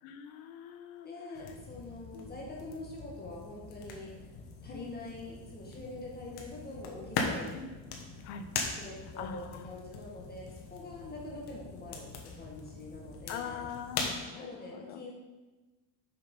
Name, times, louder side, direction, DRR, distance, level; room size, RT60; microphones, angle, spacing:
voice 1, 0.0-1.5 2.1-2.3 4.7-5.0 7.5-7.7 8.2-8.5 9.0-9.8 13.3-15.1, left 7 dB, 90° left, 8 dB, 1.0 m, -44 dB
voice 2, 1.0-4.1 4.6-7.6 8.7-13.7 14.4-15.1, left 2 dB, 20° left, -2 dB, 1.5 m, -44 dB
sound 1, 1.4-14.2, left 4 dB, 60° left, 1.4 m, -41 dB
6.7 x 6.4 x 5.3 m, 1.2 s
cardioid pair, 160°, 44 cm